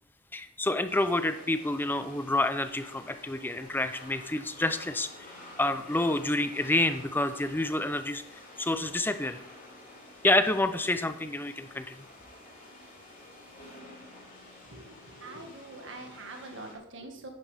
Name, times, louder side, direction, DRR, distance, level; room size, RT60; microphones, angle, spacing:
voice 1, 0.3-5.3 5.6-8.2 8.6-9.4 10.2-11.9, left 2 dB, 10° left, 11 dB, 0.6 m, -28 dB
sound 1, 0.8-16.7, left 1 dB, 40° left, 3.6 m, -50 dB
voice 2, 14.7-17.3, right 2 dB, 65° right, 3 dB, 1.7 m, -44 dB
11.0 x 9.6 x 3.5 m, 0.73 s
head